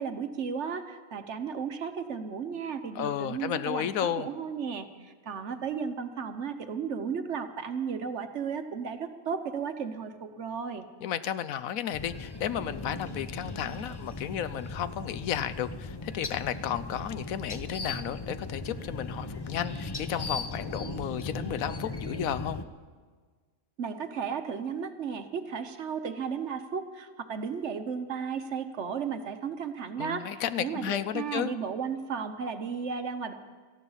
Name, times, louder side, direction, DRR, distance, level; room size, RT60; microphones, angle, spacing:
voice 1, 0.0-10.9 23.8-33.3, right 6 dB, 55° right, 8 dB, 1.2 m, -34 dB
voice 2, 2.9-4.3 11.0-22.6 30.0-31.5, left 10 dB, 75° left, 14 dB, 1.0 m, -33 dB
sound 1, 11.9-22.6, left 2 dB, 25° left, 0.5 m, -38 dB
18.0 x 14.0 x 5.6 m, 1.5 s
omnidirectional pair, 1.5 m